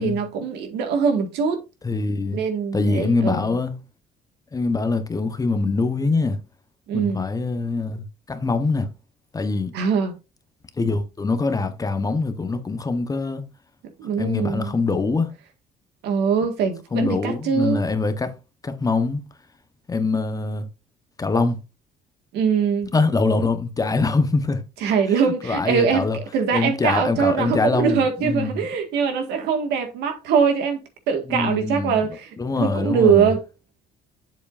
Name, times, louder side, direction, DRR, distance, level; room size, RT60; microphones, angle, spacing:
voice 1, 0.0-1.6 2.3-3.6 6.9-7.3 9.7-10.1 14.0-14.8 16.0-17.8 22.3-22.9 24.8-32.3 32.6-33.4, right 6 dB, 85° right, 1.8 m, -22 dB
voice 2, 1.8-2.4 2.7-3.8 4.5-6.4 6.9-8.9 9.3-9.7 10.8-13.4 14.2-15.3 16.9-18.3 18.6-19.2 19.9-20.7 21.2-21.6 22.9-24.6 25.4-26.2 26.5-28.7 31.3-32.1 32.4-33.3, left 3 dB, 20° left, 1.0 m, -23 dB
8.0 x 7.2 x 2.5 m
cardioid pair, 110°, 17 cm